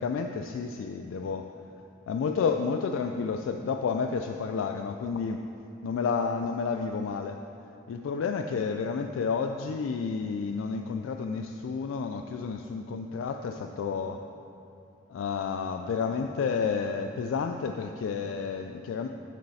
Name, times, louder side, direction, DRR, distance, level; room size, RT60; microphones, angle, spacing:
voice 1, 0.0-1.5 2.1-5.4 5.8-7.4 7.9-14.2 15.1-19.1, left 5 dB, 80° left, 5 dB, 0.3 m, -30 dB
8.4 x 6.3 x 4.2 m, 2.8 s
head